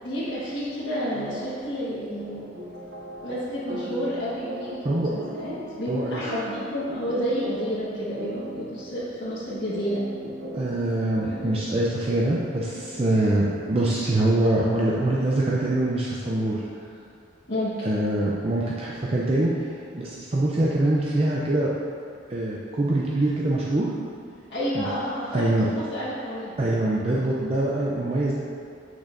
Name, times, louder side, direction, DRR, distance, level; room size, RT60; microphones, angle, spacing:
voice 1, 0.0-2.5 3.2-10.0 17.5-17.7 24.5-25.4 25.7-26.5, equal, 70° left, -12 dB, 1.4 m, -30 dB
sound 1, 2.2-14.0, right 1 dB, 65° right, 0.7 m, -39 dB
voice 2, 5.9-6.2 10.5-16.6 17.8-19.5 19.9-21.7 22.3-23.9 24.7-24.9 25.3-25.7 26.6-28.3, right 1 dB, 35° right, -5 dB, 0.5 m, -24 dB
8.4 x 6.2 x 2.6 m, 2.4 s
head